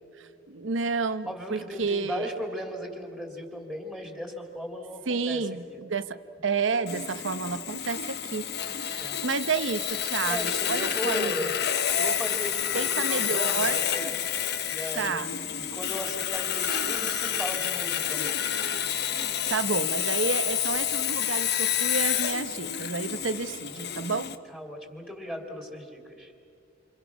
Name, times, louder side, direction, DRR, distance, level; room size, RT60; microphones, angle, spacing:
voice 1, 0.2-2.3 5.1-8.5 8.7-11.5 12.7-13.9 14.9-15.3 19.5-24.4, right 4 dB, 70° right, 12 dB, 1.0 m, -30 dB
voice 2, 1.3-5.8 9.0-9.2 9.9-11.5 12.0-14.2 14.6-18.3 24.5-26.3, equal, 5° left, 2 dB, 2.9 m, -36 dB
Sawing, 6.9-24.4, left 9 dB, 60° left, 1.0 m, -29 dB
28.0 x 27.5 x 6.1 m, 2.4 s
head